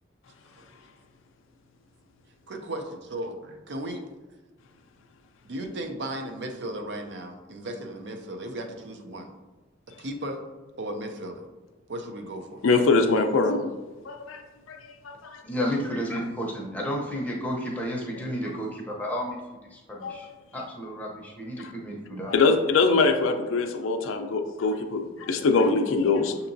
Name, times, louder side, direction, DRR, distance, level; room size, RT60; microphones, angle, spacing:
voice 1, 2.5-4.0 5.4-9.3 10.0-10.4 10.8-11.4 11.9-12.6, right 1 dB, 55° right, 5 dB, 0.5 m, -35 dB
voice 2, 12.6-13.6 14.1-14.4 14.7-14.8 15.0-15.4 20.0-20.2 22.3-26.4, left 4 dB, 80° left, 6 dB, 0.5 m, -23 dB
voice 3, 15.4-19.4 19.7-20.3 20.5-22.3, equal, 10° left, -3 dB, 0.6 m, -31 dB
6.5 x 2.9 x 2.6 m, 1.2 s
head